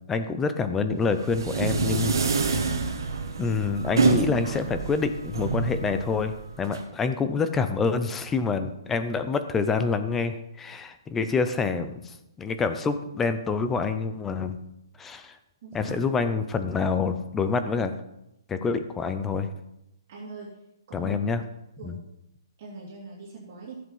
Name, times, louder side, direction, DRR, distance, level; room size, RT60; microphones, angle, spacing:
voice 1, 0.1-2.7 3.4-14.6 15.0-15.4 15.7-17.9 18.5-19.5 20.9-21.4 21.8-22.0, left 4 dB, 5° left, 10 dB, 0.5 m, -27 dB
sound 1, 1.0-6.8, right 4 dB, 60° right, 2.2 m, -27 dB
voice 2, 15.6-16.0 20.1-20.6 20.9-21.2 21.8-22.1 22.6-23.8, right 4 dB, 25° right, -7 dB, 2.8 m, -41 dB
15.0 x 7.7 x 5.5 m, 0.86 s
hypercardioid pair, 180°, 2 cm